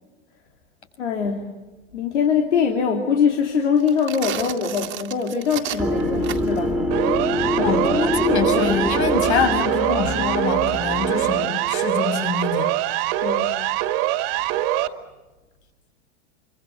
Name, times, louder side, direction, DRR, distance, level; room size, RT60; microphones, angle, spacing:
voice 1, 1.0-1.4 1.9-6.7 7.6-7.7 13.2-13.5, left 6 dB, 90° left, 2 dB, 3.4 m, -22 dB
sound 1, 3.8-6.7, right 12 dB, 35° right, 2.1 m, -33 dB
sound 2, 5.8-11.5, equal, 5° right, 2.5 m, -25 dB
Siren, 6.9-14.9, right 14 dB, 55° right, 2.2 m, -23 dB
voice 2, 7.6-12.7, left 5 dB, 75° left, 7 dB, 6.4 m, -24 dB
27.0 x 24.5 x 8.5 m, 1.1 s
hypercardioid pair, 120°, 34 cm